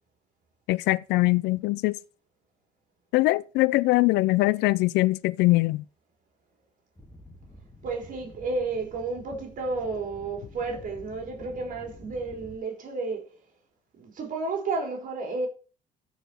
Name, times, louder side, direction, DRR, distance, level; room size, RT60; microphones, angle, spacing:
voice 1, 0.7-2.0 3.1-5.8, left 20 dB, 90° left, 0.5 m, -22 dB
sound 1, 7.0-12.6, left 1 dB, 15° left, 2.4 m, -48 dB
voice 2, 7.8-13.4 14.0-15.5, right 3 dB, 50° right, 3.9 m, -32 dB
14.0 x 5.0 x 4.6 m
cardioid pair, 110°, 17 cm